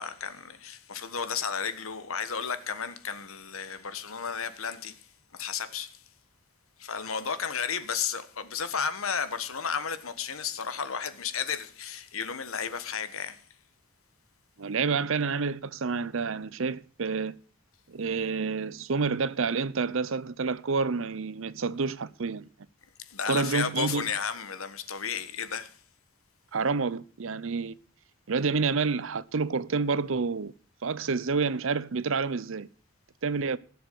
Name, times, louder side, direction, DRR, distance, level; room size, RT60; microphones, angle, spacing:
voice 1, 0.0-5.1 5.3-6.0 6.8-13.4 23.0-25.8, left 6 dB, 80° left, 1.4 m, -33 dB
voice 2, 14.6-17.3 17.9-22.5 23.3-24.1 26.5-27.7 28.3-30.5 30.8-32.7 33.2-33.6, right 4 dB, 70° right, 0.6 m, -28 dB
16.0 x 7.1 x 7.7 m
head